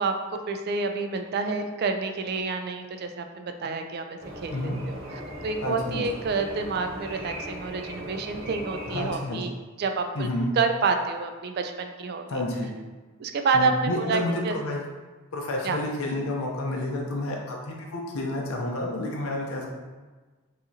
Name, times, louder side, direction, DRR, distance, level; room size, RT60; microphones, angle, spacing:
voice 1, 0.0-10.3 10.6-12.4 13.2-14.5 15.6-15.8, right 4 dB, 45° right, 6 dB, 0.3 m, -28 dB
sound 1, 4.2-9.2, equal, 75° right, 0.7 m, -38 dB
voice 2, 5.6-6.0 8.9-9.4 10.2-10.5 12.3-12.7 13.5-14.8 15.3-19.7, left 1 dB, 75° left, -1 dB, 0.6 m, -30 dB
4.9 x 2.8 x 2.7 m, 1.3 s
head